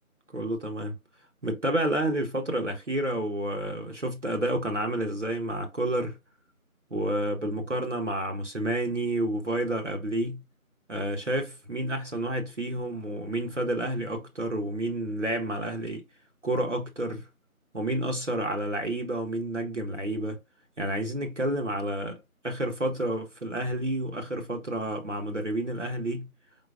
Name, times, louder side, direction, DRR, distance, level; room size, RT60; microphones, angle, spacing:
voice 1, 0.3-0.9 1.4-6.2 6.9-10.4 10.9-16.0 16.4-17.3 17.7-20.4 20.8-22.2 22.4-26.3, right 1 dB, 55° right, 0.9 m, -30 dB
4.0 x 3.9 x 2.3 m
figure-of-eight pair, 175°, 43 cm